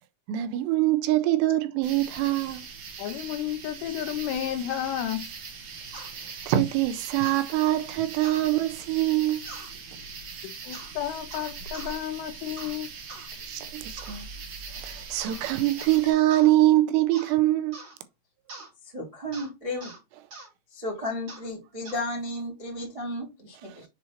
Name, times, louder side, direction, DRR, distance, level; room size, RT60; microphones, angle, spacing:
voice 1, 0.3-2.6 6.5-9.4 13.4-14.3 14.8-17.8, right 15 dB, 80° right, 2.6 m, -24 dB
sound 1, 1.8-16.1, right 5 dB, 65° right, 1.7 m, -41 dB
voice 2, 3.0-5.3 10.4-12.9, left 11 dB, 80° left, 2.7 m, -32 dB
sound 2, 5.9-6.1 7.2-7.4 8.2-8.5 9.4-9.7 10.7-10.9 11.3-11.9 12.6-12.8 13.1-13.3 14.0-14.2 15.2-15.4 15.8-16.0 16.3-16.5 17.1-17.4 17.7-18.0 18.5-18.7 19.3-19.5 19.8-20.0 20.3-20.5 21.3-21.5 21.8-22.0, right 2 dB, 40° right, 1.4 m, -43 dB
voice 3, 18.9-19.9 20.7-23.8, left 1 dB, 25° right, 0.8 m, -33 dB
7.4 x 3.0 x 4.2 m
omnidirectional pair, 5.2 m